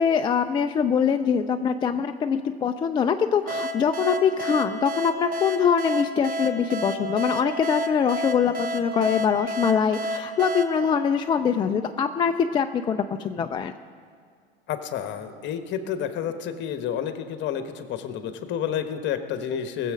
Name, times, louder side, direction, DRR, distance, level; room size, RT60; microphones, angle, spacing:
voice 1, 0.0-13.7, left 7 dB, 15° left, 7 dB, 0.3 m, -23 dB
sound 1, 3.5-11.9, right 1 dB, 25° right, 1.2 m, -31 dB
voice 2, 14.7-19.9, left 8 dB, 35° left, 9 dB, 1.1 m, -30 dB
20.0 x 7.5 x 5.1 m, 2.2 s
figure-of-eight pair, 85°, 31 cm